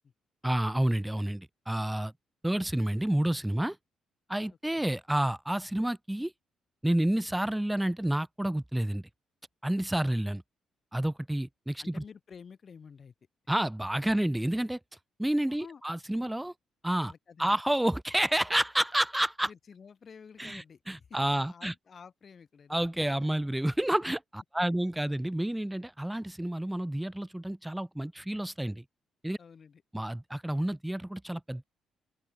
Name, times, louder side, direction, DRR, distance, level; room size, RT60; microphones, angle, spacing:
voice 1, 0.4-2.1 2.4-3.8 4.3-6.3 6.8-9.0 9.6-10.4 10.9-12.0 13.5-14.8 15.2-16.5 16.8-17.1 17.4-19.5 20.4-21.7 22.7-28.8 29.2-29.4 29.9-31.6, right 1 dB, 5° right, 0.5 m, -29 dB
voice 2, 4.5-4.8 11.8-13.1 15.5-15.8 17.0-17.6 19.4-22.8 29.4-29.8, left 6 dB, 45° left, 1.4 m, -51 dB
open air
cardioid pair, 90°, 0 cm